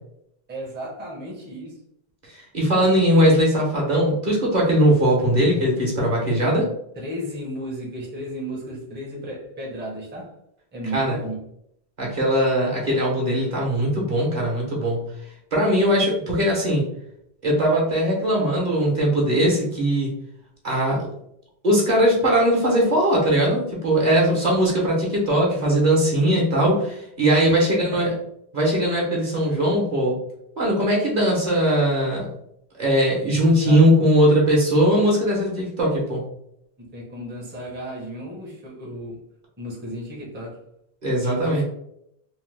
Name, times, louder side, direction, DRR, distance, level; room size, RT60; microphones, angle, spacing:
voice 1, 0.5-1.8 7.0-10.3 10.7-11.4 27.5-28.1 33.6-33.8 36.8-39.2 39.6-40.6 41.1-41.6, right 1 dB, 15° right, -3 dB, 0.6 m, -34 dB
voice 2, 2.5-6.7 10.9-11.2 12.0-15.0 15.5-16.8 17.4-20.1 20.6-21.1 21.6-28.1 28.5-30.2 30.6-32.3 32.8-36.2 41.0-41.6, equal, 45° right, -3 dB, 0.9 m, -20 dB
2.8 x 2.1 x 3.2 m, 0.75 s
omnidirectional pair, 1.0 m